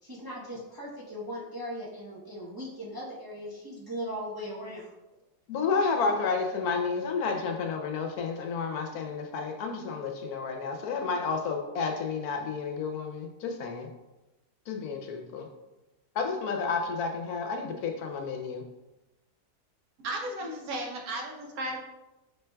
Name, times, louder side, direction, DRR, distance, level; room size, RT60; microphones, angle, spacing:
voice 1, 0.0-4.9, equal, 25° right, -5 dB, 0.5 m, -38 dB
voice 2, 5.5-13.9 14.7-15.5 16.2-18.6, left 4 dB, 75° left, 4 dB, 1.0 m, -31 dB
voice 3, 20.0-21.8, right 1 dB, 70° right, 0 dB, 1.2 m, -35 dB
5.0 x 4.4 x 2.2 m, 1.0 s
omnidirectional pair, 1.7 m